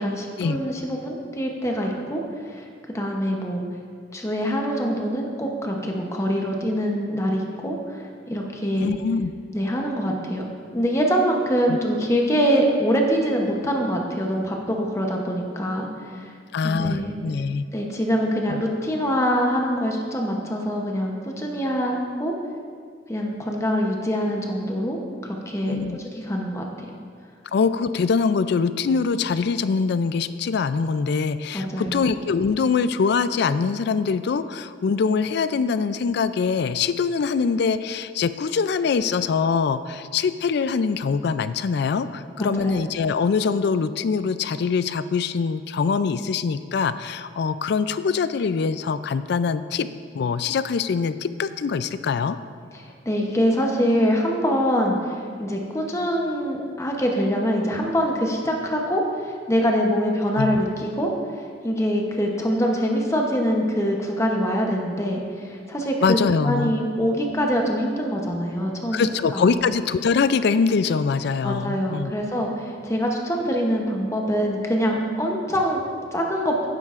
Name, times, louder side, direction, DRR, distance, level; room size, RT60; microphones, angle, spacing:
voice 1, 0.0-3.6 4.1-8.9 9.5-10.5 10.7-16.3 16.6-17.1 17.7-22.3 23.1-26.6 31.5-32.1 42.4-42.8 52.7-66.2 66.4-69.0 69.3-69.6 71.4-75.8 76.1-76.6, equal, 15° left, 0 dB, 0.8 m, -24 dB
voice 2, 8.7-9.3 11.7-11.8 16.5-17.7 18.5-18.6 25.7-26.0 27.5-49.9 50.1-52.4 60.4-60.6 66.0-66.7 68.9-72.1, left 5 dB, 60° left, 13 dB, 0.3 m, -23 dB
11.5 x 9.7 x 2.5 m, 2.1 s
head